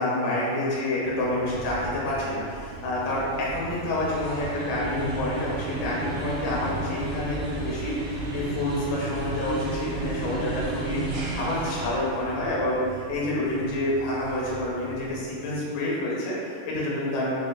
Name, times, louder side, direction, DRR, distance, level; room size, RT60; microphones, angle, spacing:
voice 1, 0.0-17.3, left 1 dB, 75° left, -6 dB, 2.4 m, -28 dB
sound 1, 1.0-15.5, right 2 dB, 90° right, 2.5 m, -34 dB
6.1 x 2.8 x 2.3 m, 2.3 s
omnidirectional pair, 3.8 m